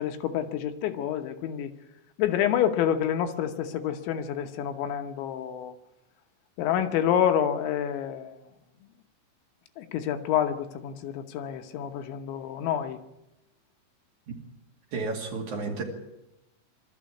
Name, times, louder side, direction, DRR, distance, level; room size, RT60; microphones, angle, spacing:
voice 1, 0.0-1.7 2.2-5.7 6.6-8.4 9.8-13.0, left 9 dB, 80° left, 7 dB, 3.4 m, -28 dB
voice 2, 14.9-15.8, right 4 dB, 50° right, 1 dB, 3.3 m, -32 dB
23.5 x 13.0 x 8.4 m, 0.93 s
omnidirectional pair, 5.3 m